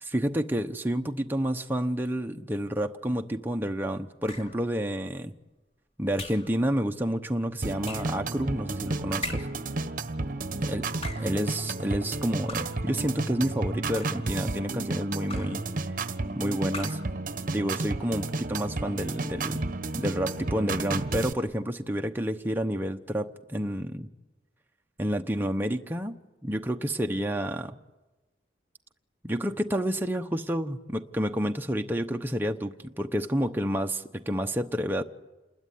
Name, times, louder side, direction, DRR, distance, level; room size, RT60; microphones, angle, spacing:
voice 1, 0.0-5.3 6.0-9.5 10.7-10.9 11.2-15.6 16.3-17.0 17.5-19.6 19.9-24.1 25.0-26.2 26.4-27.7 29.2-35.0, equal, 10° right, 4 dB, 0.9 m, -29 dB
sound 1, 4.3-4.7 6.2-6.6 7.8-8.2 9.2-9.7 10.8-11.4 12.5-12.9 13.7-14.3 15.3-15.7 16.7-17.2, left 2 dB, 35° left, 2.8 m, -40 dB
sound 2, 7.6-21.3, right 3 dB, 50° right, 1.2 m, -32 dB
28.5 x 21.5 x 9.4 m, 1.1 s
head